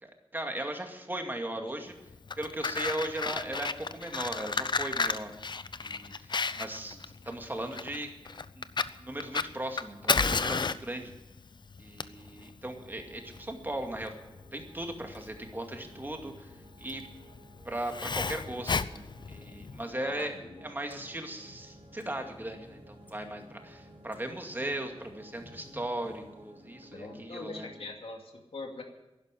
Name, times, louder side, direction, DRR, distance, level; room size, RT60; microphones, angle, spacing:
voice 1, 0.0-1.9 2.4-5.3 5.8-7.0 7.2-8.1 8.6-8.7 9.0-11.1 11.8-14.1 14.5-17.0 17.6-27.7, right 1 dB, 20° right, 3 dB, 2.2 m, -38 dB
voice 2, 1.6-1.9 20.0-20.6 26.9-28.8, left 3 dB, 70° left, 2 dB, 2.6 m, -43 dB
Fire, 2.1-19.8, left 4 dB, 50° left, 0.6 m, -33 dB
sound 1, 12.6-27.9, right 1 dB, 85° right, 3.4 m, -56 dB
sound 2, 19.5-27.7, equal, 15° left, 4.8 m, -56 dB
11.5 x 11.0 x 9.9 m, 0.98 s
wide cardioid pair, 105°, 10 cm